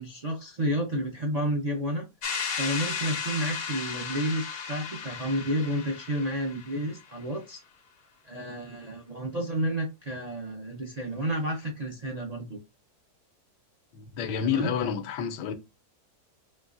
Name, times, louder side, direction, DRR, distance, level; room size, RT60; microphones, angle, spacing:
voice 1, 0.0-2.0 2.6-7.6 8.2-12.6 14.4-14.7, right 1 dB, 60° right, 0.4 m, -31 dB
sound 1, 2.2-7.0, left 6 dB, 60° left, 0.6 m, -35 dB
voice 2, 13.9-15.5, left 8 dB, 85° left, 1.3 m, -29 dB
4.3 x 3.3 x 2.5 m
omnidirectional pair, 1.8 m